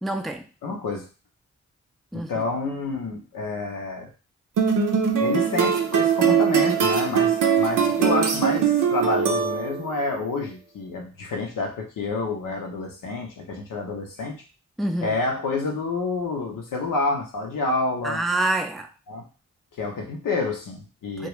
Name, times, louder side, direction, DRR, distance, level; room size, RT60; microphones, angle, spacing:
voice 1, 0.0-0.4 2.1-2.4 14.8-15.1 18.0-18.9 21.2-21.3, right 2 dB, ahead, 0.3 m, -26 dB
voice 2, 0.6-1.1 2.1-4.1 5.2-14.4 15.0-18.2 19.1-19.2 19.8-21.3, left 3 dB, 85° left, 0.7 m, -28 dB
sound 1, 4.6-10.0, right 7 dB, 90° right, 0.5 m, -21 dB
2.3 x 2.3 x 3.0 m
cardioid pair, 40°, 31 cm